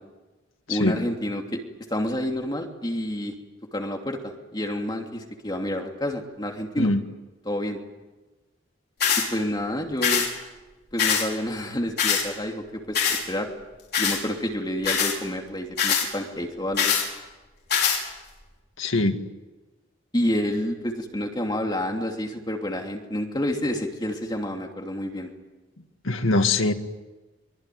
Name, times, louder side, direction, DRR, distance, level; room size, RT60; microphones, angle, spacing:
voice 1, 0.7-1.6 1.9-3.3 3.7-6.9 7.4-7.8 9.3-10.2 10.9-13.5 14.0-16.9 20.1-25.3, left 1 dB, 20° left, 2 dB, 2.9 m, -29 dB
sound 1, 9.0-9.3 10.0-10.3 11.0-11.3 12.0-12.2 13.0-13.2 13.9-14.2 14.8-15.2 15.8-16.1 16.8-17.1 17.7-18.0, left 7 dB, 50° left, 5.8 m, -22 dB
voice 2, 18.8-19.2 26.0-26.7, left 2 dB, 85° left, 6 dB, 2.1 m, -22 dB
24.5 x 23.0 x 9.5 m, 1.2 s
head